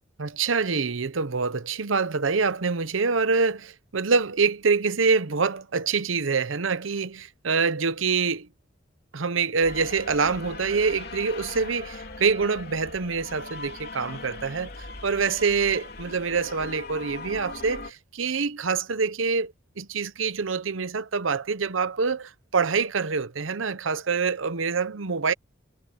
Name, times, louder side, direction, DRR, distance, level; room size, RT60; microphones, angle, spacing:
voice 1, 0.2-8.5 9.1-25.3, right 5 dB, 90° right, 0.8 m, -25 dB
sound 1, 9.6-17.9, left 3 dB, 55° left, 3.4 m, -40 dB
head